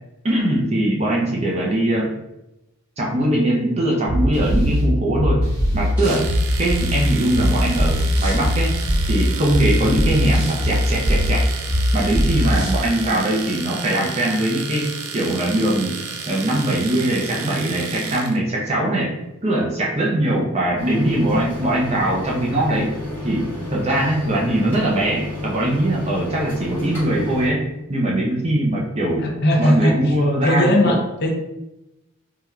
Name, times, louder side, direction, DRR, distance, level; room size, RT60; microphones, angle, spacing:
voice 1, 0.2-2.1 3.0-5.5 5.7-6.2 6.6-8.7 9.1-11.5 11.9-16.0 16.3-19.1 19.4-22.9 23.2-29.3 29.6-31.0, right 1 dB, 30° right, -3 dB, 0.5 m, -21 dB
sound 1, 4.1-12.8, equal, 10° right, 1.3 m, -21 dB
Domestic sounds home sounds, 6.0-18.4, right 5 dB, 90° right, 0.4 m, -32 dB
sound 2, 20.8-27.5, left 2 dB, 10° left, 1.3 m, -32 dB
voice 2, 29.2-30.1 30.4-31.3, left 1 dB, 45° left, 1 dB, 0.5 m, -18 dB
3.6 x 2.8 x 2.2 m, 0.93 s
head